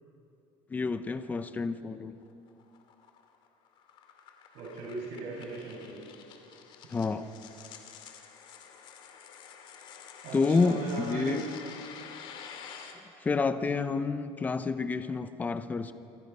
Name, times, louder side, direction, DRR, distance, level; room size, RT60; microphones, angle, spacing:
voice 1, 0.7-2.1 6.9-7.3 10.3-11.4 13.2-15.9, left 4 dB, 15° left, 11 dB, 0.8 m, -29 dB
sound 1, 2.2-12.9, left 7 dB, 50° left, 2.3 m, -49 dB
voice 2, 4.5-6.0 10.2-11.4, right 3 dB, 65° right, -3 dB, 6.6 m, -38 dB
27.5 x 25.0 x 5.6 m, 2.7 s
cardioid pair, 175°, 11 cm